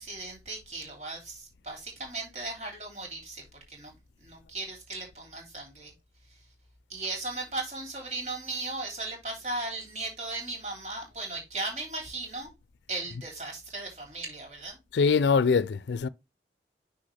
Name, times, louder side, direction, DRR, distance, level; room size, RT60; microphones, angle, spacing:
voice 1, 0.0-3.9 4.2-5.9 6.9-12.5 12.9-14.8, right 2 dB, 40° right, 3.1 m, -37 dB
voice 2, 14.9-16.1, left 5 dB, 75° left, 0.4 m, -23 dB
6.1 x 5.8 x 3.2 m
head